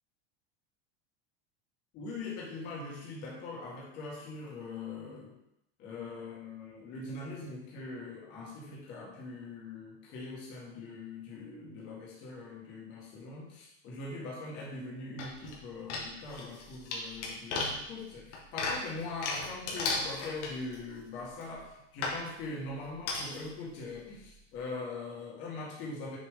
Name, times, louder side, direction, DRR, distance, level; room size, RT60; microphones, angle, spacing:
voice 1, 1.9-5.3 5.8-26.2, left 3 dB, 30° left, -4 dB, 1.8 m, -42 dB
sound 1, 15.2-15.6 15.9-20.9 21.4-21.5 22.0-22.2 23.1-23.5 23.9-24.0 24.2-24.3, left 3 dB, 80° left, 1.8 m, -35 dB
6.8 x 5.2 x 3.8 m, 0.82 s
supercardioid pair, 175°, 34 cm